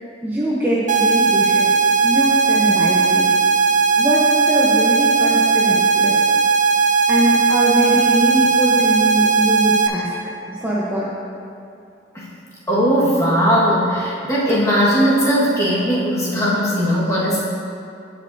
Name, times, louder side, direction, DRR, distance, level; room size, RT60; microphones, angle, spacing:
voice 1, 0.2-1.7 2.0-3.3 4.0-6.2 7.1-10.1 10.5-11.1, equal, 10° right, -7 dB, 0.8 m, -22 dB
sound 1, 0.9-9.9, right 5 dB, 40° right, 0.5 m, -17 dB
voice 2, 12.7-17.4, equal, 15° left, -7 dB, 1.5 m, -18 dB
15.0 x 5.3 x 2.7 m, 2.5 s
head